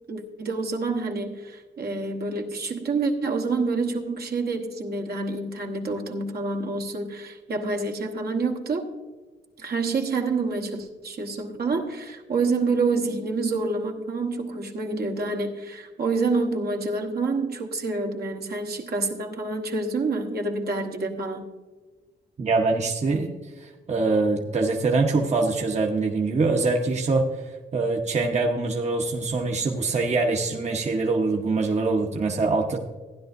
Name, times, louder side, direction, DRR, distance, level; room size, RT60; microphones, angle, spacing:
voice 1, 0.1-8.9 9.6-21.5, right 3 dB, 55° right, 2 dB, 1.2 m, -27 dB
voice 2, 22.4-23.3 23.6-32.8, right 3 dB, 35° right, 1 dB, 1.0 m, -24 dB
15.5 x 10.0 x 2.6 m, 1.3 s
cardioid pair, 95°, 19 cm